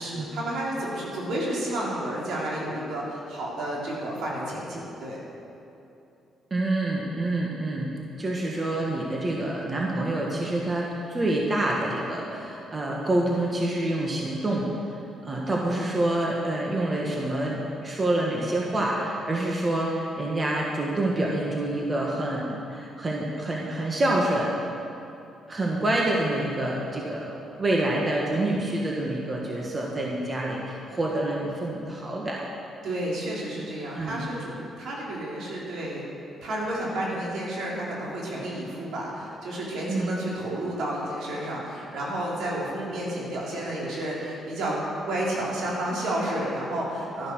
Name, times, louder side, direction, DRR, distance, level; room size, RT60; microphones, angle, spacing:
voice 1, 0.0-5.2 32.8-36.0 36.4-44.8 45.1-47.3, right 1 dB, 75° right, -4 dB, 3.9 m, -31 dB
voice 2, 6.5-7.9 8.2-14.7 15.2-24.5 25.5-32.4 34.0-34.2 39.9-40.1, right 1 dB, 30° right, -3 dB, 1.8 m, -27 dB
13.0 x 10.0 x 6.4 m, 2.8 s
cardioid pair, 90°, 0 cm